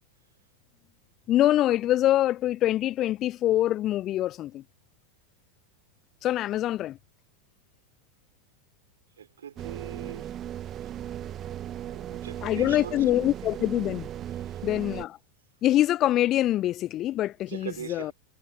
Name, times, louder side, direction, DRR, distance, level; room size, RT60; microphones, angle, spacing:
voice 1, 1.3-4.6 6.2-7.0 12.4-14.1 14.6-15.2 15.6-18.1, left 13 dB, 35° left, 0.6 m, -24 dB
voice 2, 9.2-10.3 11.3-13.0 14.4-14.6 17.5-18.1, right 8 dB, 65° right, 4.4 m, -41 dB
sound 1, 9.6-15.0, right 11 dB, 30° right, 1.4 m, -37 dB
figure-of-eight pair, 90°, 0 cm